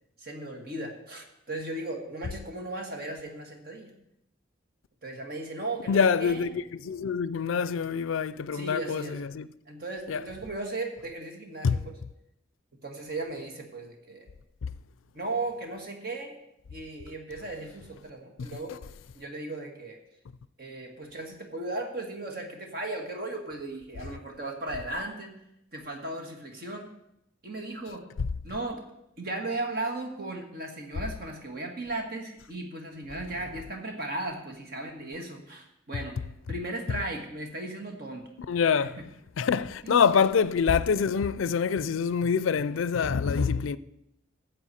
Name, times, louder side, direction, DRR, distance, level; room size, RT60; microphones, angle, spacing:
voice 1, 0.2-3.9 5.0-6.5 8.5-9.2 9.7-12.0 12.8-14.3 15.1-16.4 16.7-18.7 19.1-20.0 20.6-25.3 25.7-26.9 27.4-28.1 28.4-28.8 29.2-36.2 36.5-38.2 38.8-39.0 39.8-40.0, right 2 dB, 50° right, 1.6 m, -36 dB
voice 2, 5.9-9.5 10.1-10.2 11.6-11.8 14.6-14.7 18.4-18.5 28.2-28.3 38.5-39.0 39.4-43.8, left 6 dB, 85° left, 0.4 m, -25 dB
13.5 x 7.7 x 4.3 m
head